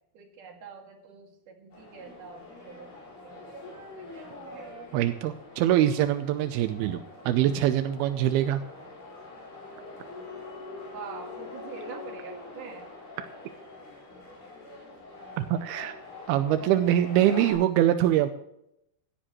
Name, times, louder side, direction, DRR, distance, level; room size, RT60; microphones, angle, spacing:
voice 1, 0.1-2.9 3.2-5.0 10.9-12.9 16.6-16.8, right 5 dB, 50° right, 1 dB, 3.6 m, -45 dB
sound 1, 1.7-17.5, left 2 dB, 50° left, 6.6 m, -44 dB
voice 2, 4.9-8.6 15.4-15.9 16.3-18.3, right 12 dB, 85° right, 9 dB, 2.3 m, -24 dB
17.0 x 12.5 x 3.2 m, 0.79 s
omnidirectional pair, 5.0 m